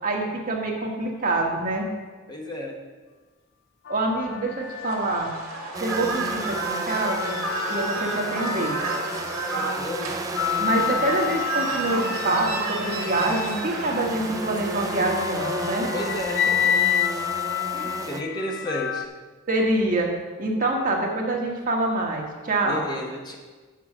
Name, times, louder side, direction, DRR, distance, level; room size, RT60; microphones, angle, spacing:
voice 1, 0.0-1.9 3.9-5.3 5.7-7.4 7.7-8.8 10.6-15.9 19.5-20.1 20.4-22.8, right 2 dB, 40° right, 0 dB, 1.5 m, -26 dB
voice 2, 2.3-2.8 9.0-10.2 15.9-16.8 17.7-19.1 22.6-23.3, left 1 dB, 20° left, 0 dB, 1.0 m, -33 dB
sound 1, 3.8-5.7 6.2-19.1, left 10 dB, 55° left, 0.4 m, -30 dB
sound 2, 4.7-15.8, right 3 dB, 85° right, 1.9 m, -32 dB
sound 3, 5.7-18.2, right 3 dB, 15° right, 0.3 m, -34 dB
8.2 x 6.2 x 6.0 m, 1.3 s
head